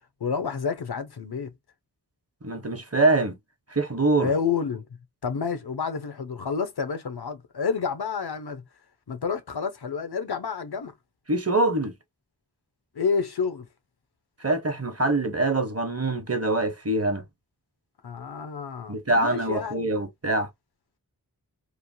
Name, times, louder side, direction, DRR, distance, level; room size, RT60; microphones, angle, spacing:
voice 1, 0.2-1.5 4.2-4.9 5.2-8.6 9.1-10.9 12.9-13.7 18.0-19.9, left 5 dB, 85° left, 0.7 m, -29 dB
voice 2, 2.4-3.4 3.7-4.3 11.3-11.9 14.4-17.2 18.9-20.5, right 2 dB, 40° right, 0.8 m, -24 dB
3.1 x 2.0 x 2.6 m
wide cardioid pair, 50°, 38 cm